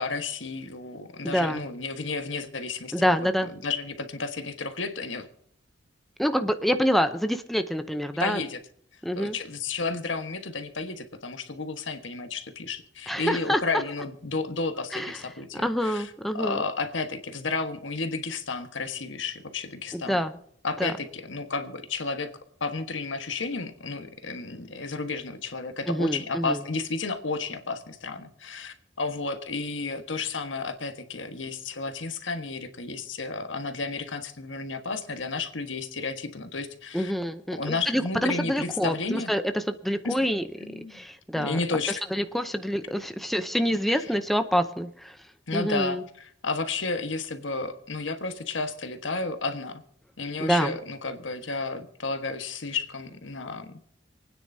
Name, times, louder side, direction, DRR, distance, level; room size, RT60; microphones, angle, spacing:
voice 1, 0.0-3.3 3.6-5.3 8.2-8.6 9.2-20.2 20.6-22.3 22.6-37.1 37.6-39.3 40.0-40.3 40.6-41.0 41.4-42.0 43.7-44.2 45.5-49.8 50.2-53.7, left 4 dB, 85° left, 8 dB, 1.4 m, -32 dB
voice 2, 1.2-1.6 2.9-3.5 6.2-8.4 9.0-9.3 13.1-13.6 14.9-15.2 15.5-16.6 19.9-20.4 20.8-20.9 25.9-26.6 36.9-40.4 40.7-41.6 41.9-45.2 45.5-46.0 50.4-50.8, equal, ahead, 8 dB, 0.7 m, -26 dB
28.0 x 9.6 x 2.8 m, 0.68 s
head